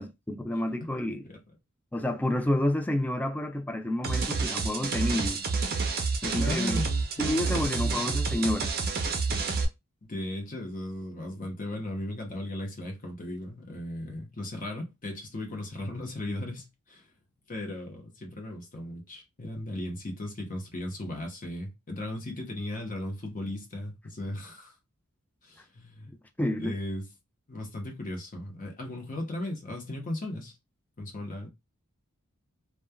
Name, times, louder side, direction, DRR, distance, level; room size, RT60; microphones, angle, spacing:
voice 1, 0.0-1.2 1.9-5.4 6.2-6.8 7.2-8.7 26.1-26.8, left 1 dB, 5° left, 0.3 m, -29 dB
sound 1, 4.0-9.6, right 4 dB, 45° right, 0.5 m, -29 dB
voice 2, 6.4-8.0 10.0-17.0 17.5-24.7 25.4-26.1 26.6-27.1 27.5-30.5 31.0-31.5, left 1 dB, 40° left, 0.9 m, -37 dB
3.1 x 2.2 x 2.2 m
head